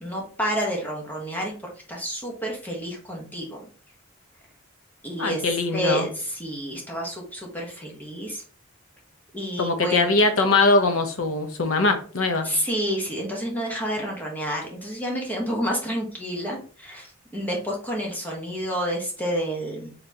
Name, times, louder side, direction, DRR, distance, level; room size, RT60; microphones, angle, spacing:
voice 1, 0.0-1.5 1.9-3.6 5.0-5.4 5.7-8.4 9.3-10.1 12.4-19.9, equal, 10° left, -2 dB, 1.1 m, -29 dB
voice 2, 5.2-6.1 9.6-12.5, left 3 dB, 90° left, 7 dB, 0.8 m, -21 dB
4.2 x 3.8 x 2.8 m, 0.42 s
head